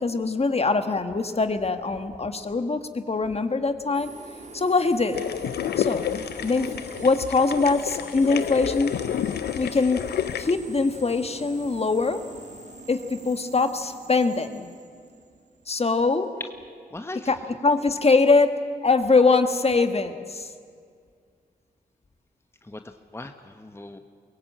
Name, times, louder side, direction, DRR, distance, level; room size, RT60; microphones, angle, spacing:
voice 1, 0.0-4.1 4.5-5.2 5.8-6.1 6.4-8.9 9.5-10.0 10.4-12.2 12.9-14.7 15.7-16.3 17.1-20.5, left 3 dB, 40° left, 8 dB, 1.6 m, -23 dB
sound 1, 3.9-15.9, right 3 dB, 45° right, 2.7 m, -44 dB
sound 2, 5.1-10.5, left 9 dB, 85° left, 0.7 m, -30 dB
voice 2, 16.9-17.3 22.6-24.0, left 2 dB, 15° left, 7 dB, 1.2 m, -38 dB
23.0 x 16.5 x 8.8 m, 2.1 s
cardioid pair, 50°, 16 cm